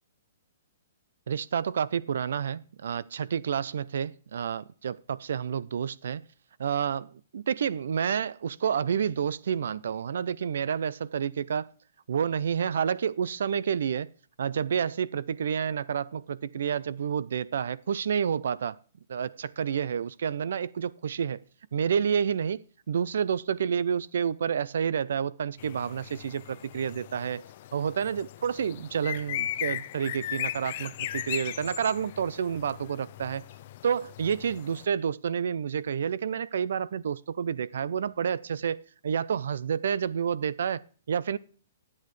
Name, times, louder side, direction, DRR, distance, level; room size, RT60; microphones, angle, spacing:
voice 1, 1.3-6.2 6.6-11.7 12.1-14.1 14.4-18.8 19.1-21.4 21.7-27.4 27.7-33.4 33.8-38.8 39.0-41.4, right 7 dB, 60° right, 0.4 m, -29 dB
sound 1, 25.6-34.9, left 13 dB, 35° left, 0.4 m, -38 dB
12.5 x 8.5 x 3.1 m
hypercardioid pair, 180°, 0 cm